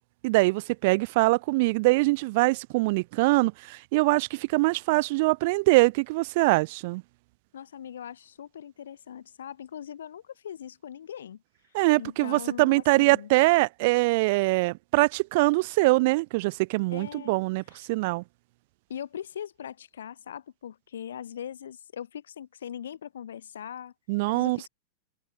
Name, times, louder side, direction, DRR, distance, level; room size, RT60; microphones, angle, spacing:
voice 1, 0.2-7.0 11.7-17.6 17.9-18.2 24.1-24.6, right 24 dB, 50° right, 1.5 m, -23 dB
voice 2, 7.5-11.4 12.0-13.3 16.9-17.4 17.7-17.9 18.9-23.9 24.3-24.7, left 9 dB, 65° left, 5.5 m, -40 dB
figure-of-eight pair, 90°, 0 cm